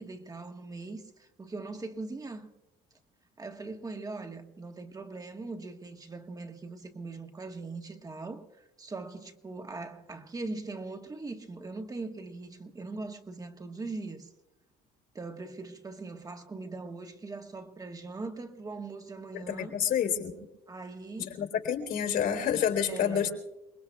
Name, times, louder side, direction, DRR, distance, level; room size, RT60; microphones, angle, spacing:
voice 1, 0.0-2.5 3.4-14.3 15.1-19.7 20.7-21.4 22.9-23.3, right 3 dB, 20° right, 1.5 m, -41 dB
voice 2, 19.3-20.3 21.2-23.3, left 8 dB, 70° left, 3.7 m, -29 dB
29.5 x 20.5 x 2.4 m
cardioid pair, 110°, 17 cm